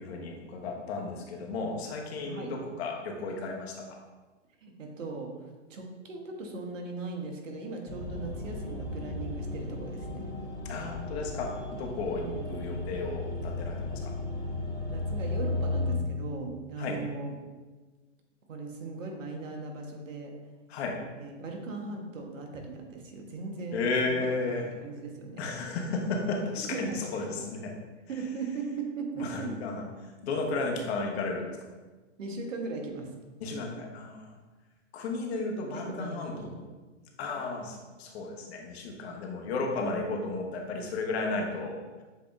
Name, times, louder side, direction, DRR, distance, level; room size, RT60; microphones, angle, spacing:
voice 1, 0.0-3.8 10.6-14.1 16.8-17.0 20.7-21.0 23.7-24.6 25.4-27.7 29.2-29.8 30.2-31.6 33.4-34.3 34.9-36.5 37.2-42.0, left 3 dB, 55° left, 1 dB, 1.0 m, -33 dB
voice 2, 2.3-2.6 4.6-10.2 12.1-12.7 14.9-17.4 18.5-20.3 21.2-23.8 24.1-25.4 26.6-27.3 28.1-29.6 32.2-33.1 35.7-36.5, right 3 dB, 80° right, 2 dB, 1.1 m, -38 dB
sound 1, 7.9-15.9, left 2 dB, 10° left, 0.5 m, -35 dB
7.4 x 2.8 x 2.4 m, 1.3 s
hypercardioid pair, 140°, 38 cm